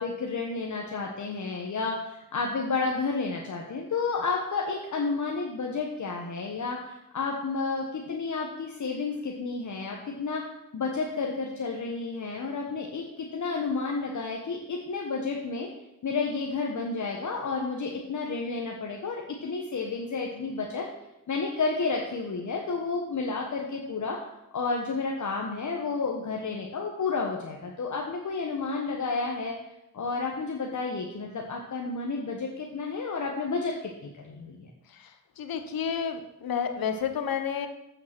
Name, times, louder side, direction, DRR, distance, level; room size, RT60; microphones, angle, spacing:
voice 1, 0.0-10.4 10.7-15.7 16.0-20.8 21.3-24.2 24.5-29.6 29.9-34.7, left 4 dB, 55° left, 0 dB, 1.3 m, -31 dB
voice 2, 35.4-37.7, left 7 dB, 75° left, 8 dB, 1.1 m, -30 dB
8.8 x 5.8 x 6.0 m, 0.87 s
cardioid pair, 60°, 35 cm